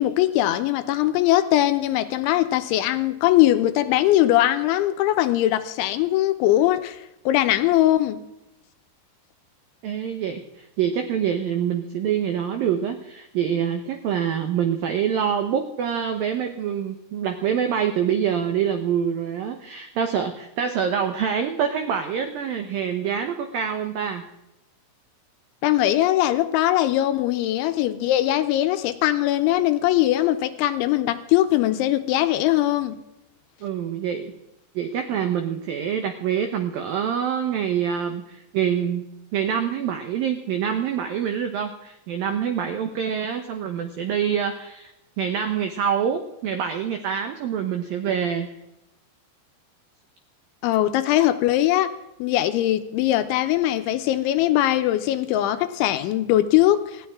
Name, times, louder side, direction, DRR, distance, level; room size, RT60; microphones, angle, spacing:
voice 1, 0.0-7.0 7.3-8.2 25.6-33.0 50.6-51.9 52.2-57.1, left 14 dB, 80° left, 10 dB, 3.1 m, -21 dB
voice 2, 9.8-24.2 33.6-34.3 34.8-39.0 39.3-44.9 45.2-48.5, right 8 dB, 85° right, 6 dB, 2.0 m, -26 dB
19.0 x 15.5 x 3.6 m, 0.89 s
omnidirectional pair, 5.6 m